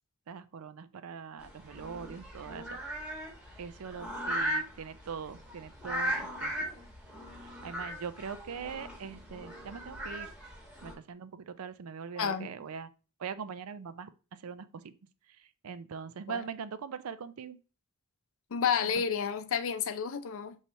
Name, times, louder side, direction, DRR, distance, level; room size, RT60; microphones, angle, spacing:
voice 1, 0.3-2.8 3.6-6.5 7.4-10.3 10.8-12.9 13.2-14.9 15.3-17.6 18.8-19.0, right 6 dB, 80° right, 0.4 m, -42 dB
sound 1, 1.4-10.9, equal, 5° right, 1.1 m, -38 dB
voice 2, 12.2-12.5 16.3-16.4 18.5-20.6, left 7 dB, 65° left, 0.5 m, -30 dB
5.5 x 3.2 x 2.6 m
head